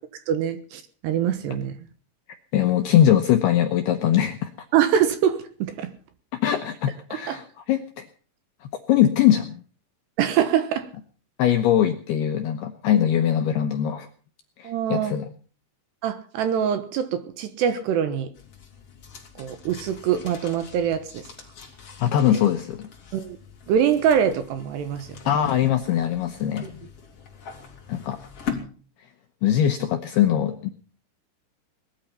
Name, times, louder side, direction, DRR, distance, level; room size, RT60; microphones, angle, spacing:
voice 1, 0.3-1.7 4.7-5.9 7.3-7.4 10.2-10.9 14.6-15.2 16.0-18.3 19.4-21.2 22.3-22.4 23.1-23.4 23.7-25.1, right 9 dB, 70° right, 2.8 m, -24 dB
voice 2, 2.5-4.5 6.4-8.1 8.6-9.5 11.4-14.1 14.6-15.3 22.0-22.9 25.3-26.8 27.9-28.2 29.4-30.7, left 10 dB, 80° left, 2.4 m, -21 dB
sound 1, 18.3-28.6, left 7 dB, 35° left, 3.0 m, -41 dB
19.5 x 12.5 x 5.6 m
omnidirectional pair, 5.9 m